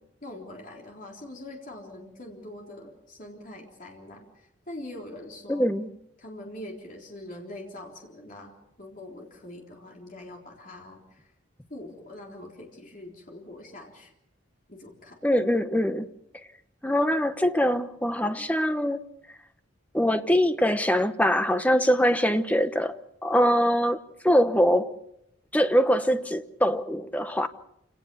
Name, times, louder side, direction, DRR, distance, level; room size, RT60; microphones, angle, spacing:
voice 1, 0.2-5.7 6.2-8.5 8.8-11.3 11.7-14.1 14.7-15.2, left 1 dB, 45° left, 3.8 m, -43 dB
voice 2, 5.5-5.9 15.2-16.1 16.3-16.5 16.8-19.0 19.3-19.4 19.9-24.9 25.5-27.5, equal, 5° left, 1.0 m, -23 dB
28.0 x 18.0 x 7.0 m
head